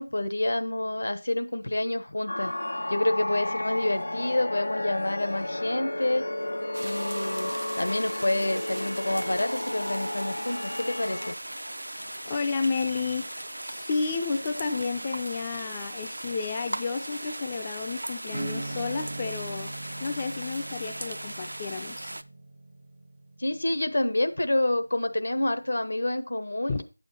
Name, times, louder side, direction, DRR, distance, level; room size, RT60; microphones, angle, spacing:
voice 1, 0.0-2.5 2.9-6.3 6.8-11.3 23.4-26.8, left 1 dB, 65° left, 9 dB, 1.0 m, -28 dB
sound 1, 2.3-11.3, left 1 dB, 80° left, 0.5 m, -32 dB
sound 2, 6.7-22.2, right 1 dB, 90° right, 0.6 m, -38 dB
voice 2, 11.9-19.7 20.0-22.1 26.7-26.8, left 4 dB, 15° left, 7 dB, 0.4 m, -31 dB
Acoustic guitar / Strum, 18.3-24.5, right 2 dB, 55° right, 0.8 m, -40 dB
8.7 x 6.9 x 4.2 m, 0.30 s
figure-of-eight pair, 175°, 0 cm